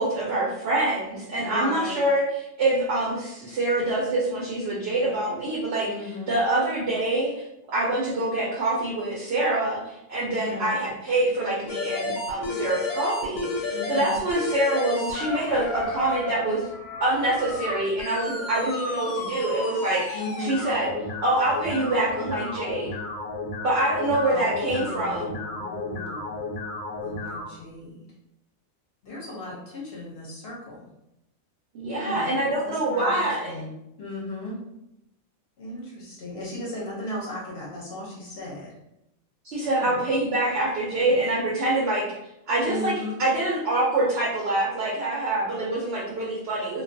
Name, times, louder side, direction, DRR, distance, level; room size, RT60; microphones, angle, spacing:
voice 1, 0.0-2.2 2.6-5.9 6.3-16.7 17.0-20.9 21.2-22.9 23.6-25.4 31.7-33.6 39.4-42.1 42.5-42.9 43.2-46.8, right 2 dB, 60° right, -5 dB, 0.7 m, -25 dB
voice 2, 1.4-2.0 5.8-6.3 10.4-10.7 13.7-14.1 20.1-20.6 24.2-26.4 27.0-28.1 29.0-30.9 32.0-32.3 32.6-33.7 34.0-34.6 35.6-38.8 39.7-40.0 41.0-41.1 42.6-43.2, left 2 dB, 55° left, -5 dB, 0.8 m, -36 dB
sound 1, 11.7-27.4, left 2 dB, 85° left, 1.0 m, -32 dB
2.3 x 2.3 x 2.5 m, 0.84 s
omnidirectional pair, 1.4 m